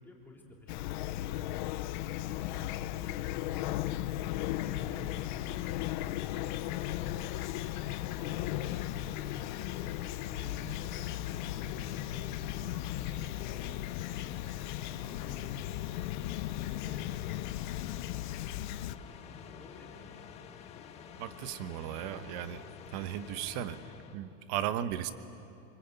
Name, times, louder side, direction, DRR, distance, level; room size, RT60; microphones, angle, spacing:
voice 1, 0.0-1.4 1.9-4.0 4.5-7.1 7.8-9.5 10.2-14.3 14.8-15.7 16.2-18.4 19.2-20.3, left 2 dB, 5° left, -2 dB, 3.5 m, -52 dB
Fowl / Chirp tweet, 0.7-19.0, left 14 dB, 50° left, 0.8 m, -36 dB
sound 1, 4.3-24.2, left 7 dB, 20° left, 1.4 m, -49 dB
voice 2, 21.2-22.6 22.9-23.8 24.1-25.1, right 11 dB, 45° right, 12 dB, 1.2 m, -36 dB
25.5 x 25.5 x 8.2 m, 2.8 s
supercardioid pair, 165°, 30 cm